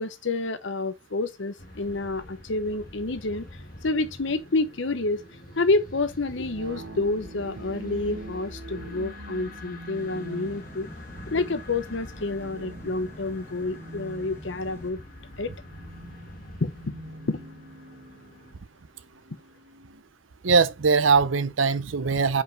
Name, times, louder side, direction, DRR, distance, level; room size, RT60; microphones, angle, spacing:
voice 1, 0.0-3.5 3.8-5.2 5.6-10.9 11.3-15.0 15.4-15.5 16.6-17.0 17.3-17.5, left 3 dB, 70° left, 0.9 m, -28 dB
sound 1, 1.6-18.5, left 1 dB, 45° left, 1.5 m, -45 dB
sound 2, 4.7-20.0, right 2 dB, 70° right, 1.4 m, -46 dB
sound 3, 9.9-14.9, equal, 15° left, 1.9 m, -46 dB
voice 2, 20.4-22.4, right 5 dB, 85° right, 0.6 m, -21 dB
5.1 x 5.0 x 4.5 m
head